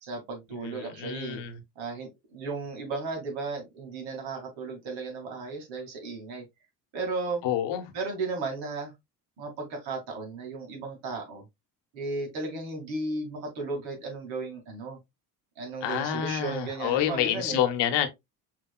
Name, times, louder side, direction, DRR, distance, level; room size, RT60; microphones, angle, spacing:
voice 1, 0.0-1.4 1.8-6.4 6.9-7.4 7.9-8.9 9.4-11.4 11.9-15.0 15.6-17.6, right 3 dB, 65° right, 2.4 m, -35 dB
voice 2, 0.6-1.6 7.4-7.8 15.8-18.1, left 10 dB, 60° left, 1.2 m, -28 dB
5.9 x 3.4 x 2.3 m
hypercardioid pair, 60°, 49 cm